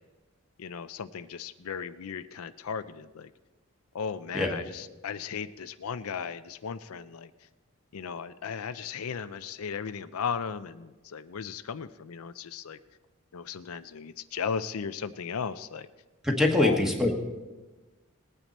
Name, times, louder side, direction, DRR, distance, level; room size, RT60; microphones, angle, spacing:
voice 1, 0.6-3.3 3.9-7.3 7.9-12.8 13.3-15.9 16.5-16.8, left 6 dB, 85° left, 12 dB, 0.5 m, -36 dB
voice 2, 16.2-17.1, left 1 dB, ahead, 1 dB, 1.4 m, -24 dB
19.5 x 9.1 x 4.2 m, 1.2 s
head